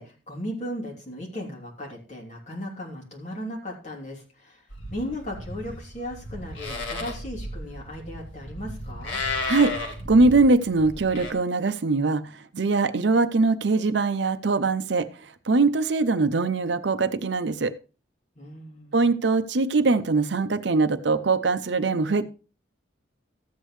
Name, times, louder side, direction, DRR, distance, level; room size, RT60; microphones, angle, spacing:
voice 1, 0.0-4.6 4.9-9.2 18.4-19.1, equal, 40° left, -3 dB, 3.0 m, -36 dB
Livestock farm animals working animals, 4.7-11.3, left 2 dB, 75° left, 2.0 m, -34 dB
voice 2, 10.1-12.2 12.5-15.1 15.5-17.7 18.9-22.3, right 3 dB, 65° right, 11 dB, 0.6 m, -22 dB
14.0 x 8.2 x 3.2 m, 0.35 s
head